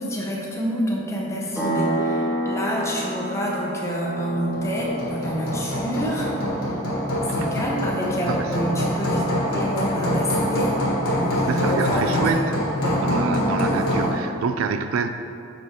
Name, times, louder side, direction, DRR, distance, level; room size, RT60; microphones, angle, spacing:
voice 1, 0.0-6.3 6.6-6.7 7.3-10.7 11.1-13.7 13.9-14.2, equal, 15° left, -3 dB, 0.8 m, -28 dB
sound 1, 1.6-9.9, right 1 dB, 10° right, 1.1 m, -30 dB
Hammer, 4.5-14.2, left 1 dB, 80° left, 1.5 m, -25 dB
voice 2, 11.5-12.6 13.0-15.1, right 5 dB, 70° right, 8 dB, 0.3 m, -26 dB
6.1 x 5.5 x 3.0 m, 2.6 s
head